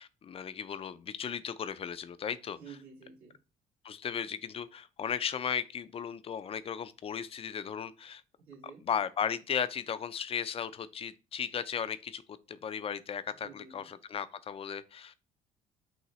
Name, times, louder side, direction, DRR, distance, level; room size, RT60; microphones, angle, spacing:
voice 1, 0.0-2.6 3.8-8.2 8.9-12.2 12.5-15.1, left 7 dB, 40° left, 0.4 m, -36 dB
voice 2, 2.6-3.4 8.5-8.8 13.4-13.9, right 6 dB, 90° right, 2.2 m, -50 dB
5.5 x 2.8 x 3.0 m
supercardioid pair, 75°, 15 cm